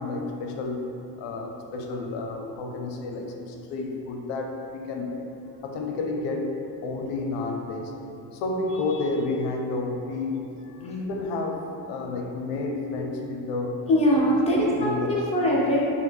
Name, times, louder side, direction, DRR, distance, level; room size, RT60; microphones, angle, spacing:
voice 1, 0.0-5.3 5.6-7.9 8.3-13.9 14.5-15.3, left 3 dB, 80° left, 2 dB, 0.7 m, -31 dB
voice 2, 13.9-15.9, equal, 15° left, -5 dB, 0.8 m, -22 dB
5.4 x 2.2 x 3.4 m, 2.8 s
cardioid pair, 105°, 43 cm